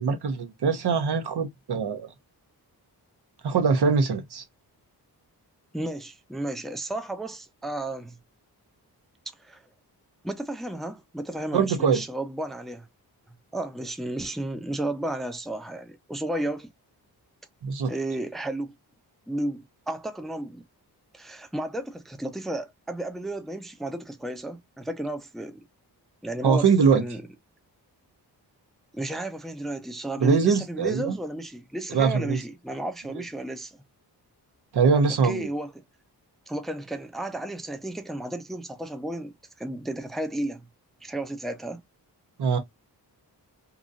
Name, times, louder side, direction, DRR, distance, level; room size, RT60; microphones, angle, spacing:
voice 1, 0.0-2.1 3.4-4.4 11.5-12.0 17.6-17.9 26.4-27.0 30.2-31.2 31.9-32.4 34.7-35.5 42.4-42.6, right 5 dB, 70° right, 0.9 m, -22 dB
voice 2, 5.7-8.2 9.4-9.6 10.2-12.9 13.5-16.7 17.9-18.7 19.3-20.6 21.1-25.6 26.2-26.7 26.9-27.3 28.9-33.8 35.1-35.7 36.5-40.6 41.0-41.8, right 1 dB, ahead, 0.5 m, -33 dB
2.9 x 2.6 x 2.4 m
cardioid pair, 70°, 41 cm